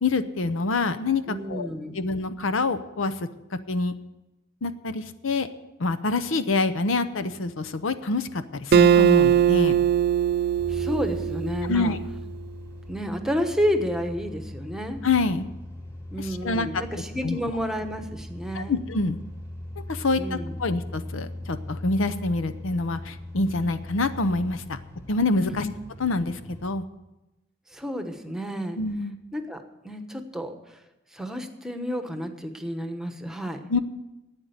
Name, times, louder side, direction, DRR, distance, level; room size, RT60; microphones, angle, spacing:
voice 1, 0.0-1.7 1.9-3.3 3.7-3.9 4.6-5.5 5.8-9.8 11.6-12.0 15.0-15.5 16.2-16.8 17.2-17.4 18.5-19.2 19.9-24.8 25.1-25.7 26.0-26.8 28.8-29.1 33.7-33.8, left 3 dB, 75° left, 12 dB, 0.7 m, -26 dB
voice 2, 1.3-2.0 10.7-12.0 12.9-15.0 16.1-18.8 20.2-20.5 25.5-25.7 27.7-28.8 29.3-30.8 31.1-33.6, equal, 5° right, 6 dB, 1.1 m, -30 dB
Acoustic guitar, 8.7-12.1, right 8 dB, 55° right, 0.4 m, -20 dB
sound 1, 10.6-26.7, left 1 dB, 15° left, 2.0 m, -39 dB
12.0 x 8.8 x 8.0 m, 0.98 s
head